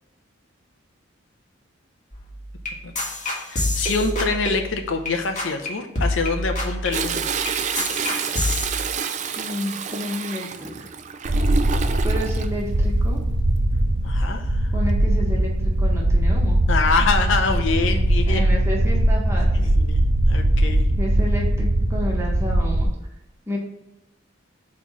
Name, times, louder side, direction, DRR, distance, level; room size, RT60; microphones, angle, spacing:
sound 1, 2.1-5.1 5.4-5.7 5.9-8.7, left 1 dB, 40° left, 1.6 m, -27 dB
voice 1, 3.5-7.3 14.0-14.7 16.7-18.5 18.9-19.1 19.8-20.9, left 4 dB, 70° left, 6 dB, 0.7 m, -25 dB
Toilet flush, 6.9-12.5 13.9-14.4 14.9-15.0, right 6 dB, 35° right, 0.4 m, -28 dB
voice 2, 9.4-10.7 12.0-13.2 14.7-16.6 18.3-19.7 21.0-22.9 23.5-23.6, left 1 dB, 15° right, -2 dB, 1.3 m, -30 dB
sound 2, 11.2-22.8, right 1 dB, 75° right, 0.8 m, -20 dB
4.5 x 4.2 x 5.6 m, 0.89 s
head